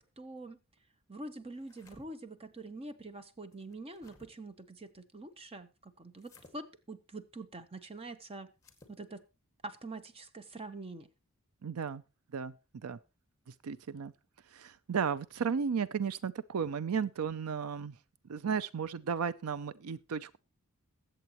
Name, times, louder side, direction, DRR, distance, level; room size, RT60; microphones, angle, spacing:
voice 1, 0.2-0.6 1.1-8.5 8.9-9.2 9.6-11.1, right 2 dB, 25° right, 0.9 m, -45 dB
sound 1, 1.5-2.1 3.5-4.3 6.2-6.6 8.5-9.0, left 3 dB, 15° left, 1.9 m, -59 dB
voice 2, 11.6-12.0 12.3-12.5 12.8-13.0 13.6-14.1 14.5-17.9 18.3-20.4, right 6 dB, 80° right, 0.5 m, -34 dB
21.5 x 7.9 x 3.0 m
head